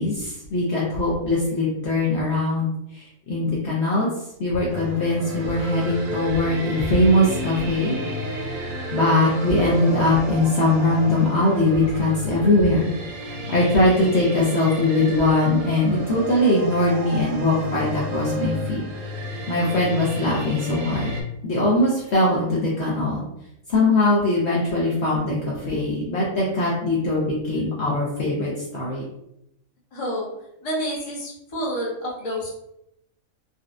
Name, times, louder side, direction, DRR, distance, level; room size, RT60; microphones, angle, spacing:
voice 1, 0.0-4.1 4.4-8.0 8.9-12.9 13.2-18.8 19.5-21.1 21.4-23.2 23.7-29.0, left 1 dB, 55° left, -5 dB, 0.9 m, -21 dB
sound 1, 4.7-21.2, equal, 80° right, 1.1 m, -32 dB
voice 2, 29.9-30.3 30.6-32.5, equal, 30° left, -4 dB, 0.8 m, -28 dB
4.0 x 2.3 x 2.5 m, 0.81 s
omnidirectional pair, 1.5 m